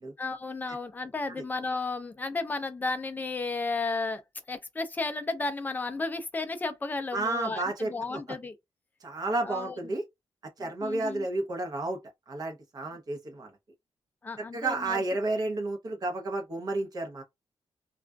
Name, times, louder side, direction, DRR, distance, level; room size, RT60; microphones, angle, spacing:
voice 1, 0.2-4.2 4.5-8.6 9.4-9.8 10.6-11.3 14.2-15.0, left 3 dB, 20° left, 0.4 m, -33 dB
voice 2, 7.1-7.9 9.0-10.0 10.6-12.0 12.3-13.5 14.4-17.2, right 2 dB, 40° right, 0.8 m, -31 dB
2.4 x 2.3 x 2.2 m
wide cardioid pair, 150°, 10 cm